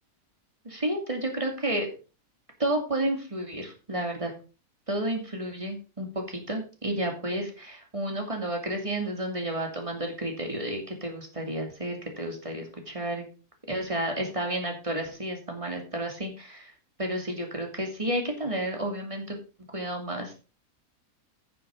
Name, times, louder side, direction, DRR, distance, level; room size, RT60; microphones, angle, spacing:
voice 1, 0.6-1.9 2.6-4.3 4.9-13.3 13.7-16.7 17.0-19.4 19.7-20.3, right 1 dB, 20° right, 3 dB, 2.6 m, -31 dB
9.3 x 7.4 x 5.1 m, 0.35 s
omnidirectional pair, 1.6 m